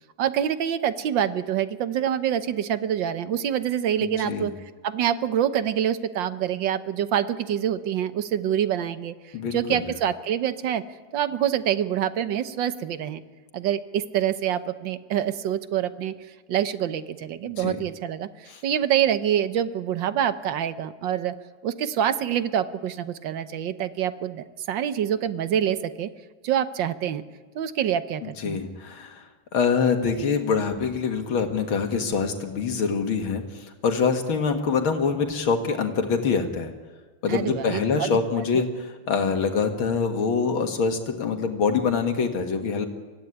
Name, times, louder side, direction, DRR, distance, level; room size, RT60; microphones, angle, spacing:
voice 1, 0.2-4.5 4.8-9.1 9.5-10.8 11.1-13.2 13.5-16.1 16.5-21.4 21.6-26.1 26.4-27.2 27.6-28.6 37.3-38.1, right 10 dB, 70° right, 11 dB, 1.7 m, -26 dB
voice 2, 4.0-4.5 9.3-9.8 17.6-17.8 18.5-18.6 28.2-29.3 29.5-36.7 37.2-42.9, left 5 dB, 90° left, 4 dB, 2.6 m, -25 dB
24.5 x 16.0 x 9.7 m, 1.3 s
omnidirectional pair, 2.2 m